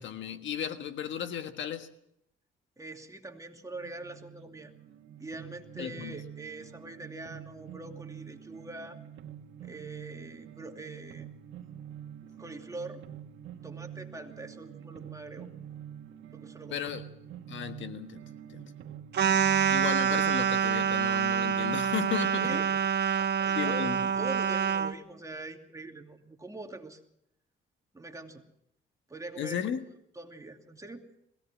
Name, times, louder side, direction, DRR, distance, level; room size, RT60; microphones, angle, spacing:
voice 1, 0.0-1.9 5.8-6.1 16.7-17.0 17.5-18.2 18.5-18.6 19.7-22.6 23.5-24.0 29.4-29.8, left 9 dB, 70° left, 9 dB, 1.5 m, -35 dB
voice 2, 2.8-4.7 5.2-9.0 9.6-11.3 12.4-13.0 13.6-15.5 16.3-16.9 22.4-22.7 23.2-23.9 24.1-27.0 27.9-28.4 29.1-29.7 30.1-31.0, right 2 dB, 15° right, 4 dB, 2.6 m, -43 dB
sound 1, 3.7-22.8, right 9 dB, 75° right, 1.8 m, -47 dB
sound 2, 19.1-24.9, right 8 dB, 55° right, 1.4 m, -26 dB
21.5 x 17.0 x 7.4 m, 0.75 s
cardioid pair, 90°, 20 cm